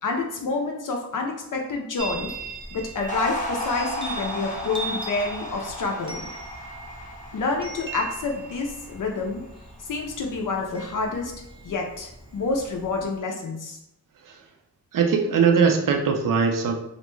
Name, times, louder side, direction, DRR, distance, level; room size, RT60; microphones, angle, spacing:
voice 1, 0.0-2.3 2.7-6.3 7.3-9.4 9.8-11.3 11.6-13.8, left 3 dB, 55° left, 1 dB, 0.5 m, -28 dB
Chime, 2.0-13.2, right 3 dB, 15° right, 0.6 m, -40 dB
sound 1, 3.1-9.6, equal, 20° left, 0.7 m, -34 dB
voice 2, 14.9-16.8, right 5 dB, 60° right, 4 dB, 0.5 m, -20 dB
2.5 x 2.1 x 3.0 m, 0.81 s
cardioid pair, 65°, 37 cm